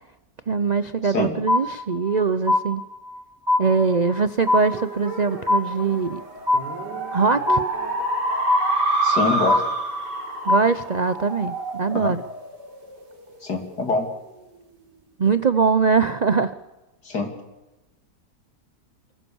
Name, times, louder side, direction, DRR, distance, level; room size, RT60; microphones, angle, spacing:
voice 1, 0.5-2.8 3.6-6.2 7.1-7.6 10.5-12.2 15.2-16.5, right 5 dB, 50° right, 13 dB, 0.5 m, -22 dB
sound 1, 1.5-2.2 2.5-3.2 3.5-4.2 4.5-5.2 5.5-6.2 6.5-7.2 7.5-8.2 8.5-9.2 9.5-10.2 10.5-11.2, left 2 dB, 25° right, 3.8 m, -23 dB
sound 2, 4.4-13.2, right 2 dB, 85° right, 3.9 m, -28 dB
voice 2, 9.0-9.6 11.9-12.1 13.4-14.1 17.0-17.3, left 3 dB, 70° left, 5 dB, 3.6 m, -24 dB
25.0 x 15.5 x 7.2 m, 1.0 s
omnidirectional pair, 1.8 m